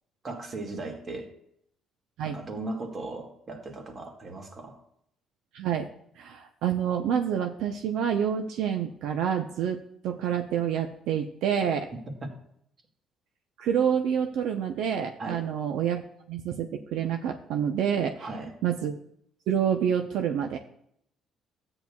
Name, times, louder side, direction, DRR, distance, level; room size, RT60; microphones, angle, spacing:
voice 1, 0.2-1.3 2.2-4.8 12.2-12.3 15.2-15.4 18.2-18.5, right 2 dB, 35° right, 3 dB, 1.9 m, -37 dB
voice 2, 5.5-5.9 6.2-9.8 10.0-11.9 13.6-16.0 16.3-18.3 18.6-19.0 19.5-20.6, right 8 dB, 80° right, 4 dB, 0.7 m, -27 dB
13.0 x 8.9 x 2.3 m, 0.71 s
cardioid pair, 110°, 0 cm